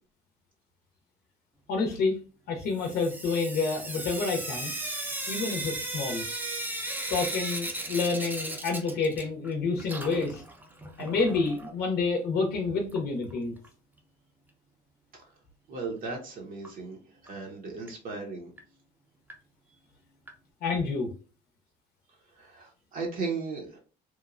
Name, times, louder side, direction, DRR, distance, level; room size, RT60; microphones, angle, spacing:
voice 1, 1.7-2.2 2.5-4.7 5.3-6.3 7.1-10.4 11.0-13.6 20.6-21.1, left 4 dB, 65° left, 2 dB, 0.6 m, -28 dB
Sink (filling or washing) / Drip, 2.8-9.5 9.8-11.7 12.9-13.0 13.3-13.4 13.6-13.7 16.6-16.7 17.3-17.4 17.9-18.0 18.6-18.7 19.3-19.4 20.3-20.4, right 1 dB, 10° right, 0.5 m, -36 dB
voice 2, 15.7-17.0 17.2-18.5 22.4-23.8, right 4 dB, 55° right, 1 dB, 0.7 m, -36 dB
2.9 x 2.1 x 2.4 m, 0.37 s
cardioid pair, 110°, 17 cm